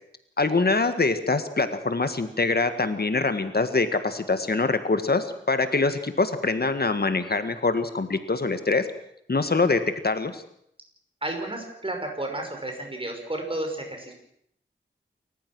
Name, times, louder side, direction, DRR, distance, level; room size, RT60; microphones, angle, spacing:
voice 1, 0.4-8.8 9.3-10.4, left 3 dB, 55° left, 9 dB, 1.7 m, -24 dB
voice 2, 11.2-14.1, right 1 dB, 25° right, 3 dB, 5.9 m, -32 dB
28.5 x 15.0 x 6.2 m, 0.72 s
wide cardioid pair, 80°, 20 cm